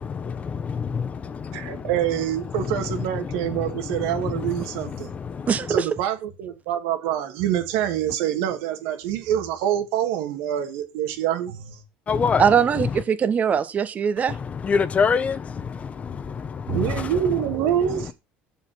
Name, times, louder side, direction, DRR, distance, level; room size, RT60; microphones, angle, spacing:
voice 1, 0.0-5.8 12.1-13.0 14.3-18.1, left 6 dB, 30° left, 0.9 m, -28 dB
voice 2, 1.5-5.1 5.7-11.8 16.7-18.1, right 10 dB, 85° right, 2.2 m, -26 dB
voice 3, 5.5-5.9 12.4-14.3, right 7 dB, 35° right, 1.4 m, -21 dB
7.6 x 7.2 x 5.9 m
supercardioid pair, 105°, 4 cm